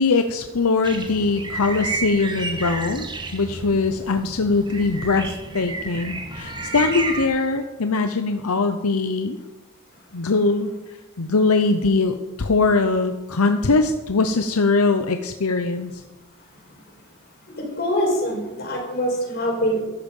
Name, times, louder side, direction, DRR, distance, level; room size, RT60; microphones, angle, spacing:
voice 1, 0.0-9.4 10.1-10.7 11.2-15.9, left 3 dB, 85° left, 7 dB, 0.8 m, -21 dB
sound 1, 0.8-7.3, right 3 dB, 20° right, 1.4 m, -31 dB
voice 2, 17.8-19.8, equal, 50° left, -1 dB, 5.1 m, -23 dB
14.0 x 11.5 x 5.5 m, 1.1 s
head